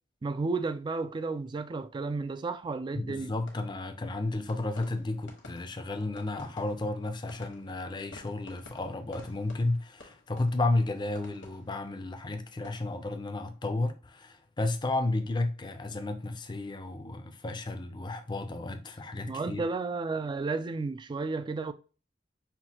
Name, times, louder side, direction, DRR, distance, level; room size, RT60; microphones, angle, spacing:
voice 1, 0.2-3.3 19.3-21.7, right 3 dB, 25° right, 0.3 m, -32 dB
voice 2, 2.9-19.6, left 2 dB, 25° left, 0.5 m, -32 dB
sound 1, 3.3-14.4 14.7-15.2, left 2 dB, 70° left, 1.2 m, -54 dB
5.8 x 2.6 x 2.8 m
head